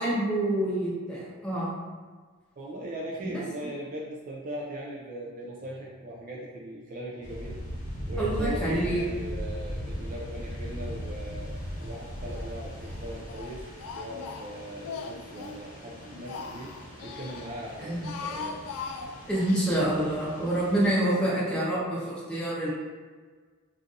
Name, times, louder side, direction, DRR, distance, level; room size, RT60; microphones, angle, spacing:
voice 1, 0.0-1.7 3.2-3.4 8.2-9.0 17.8-18.1 19.3-22.7, right 1 dB, 5° left, -8 dB, 0.7 m, -27 dB
voice 2, 2.6-7.6 8.1-13.6 13.9-16.8 17.0-18.6, right 1 dB, 35° right, -3 dB, 0.3 m, -39 dB
sound 1, 7.2-20.9, equal, 35° left, 0.8 m, -39 dB
Speech, 11.8-12.5 12.8-15.6 16.0-17.5 17.9-19.7, left 5 dB, 85° left, 0.3 m, -40 dB
2.5 x 2.4 x 3.9 m, 1.5 s
head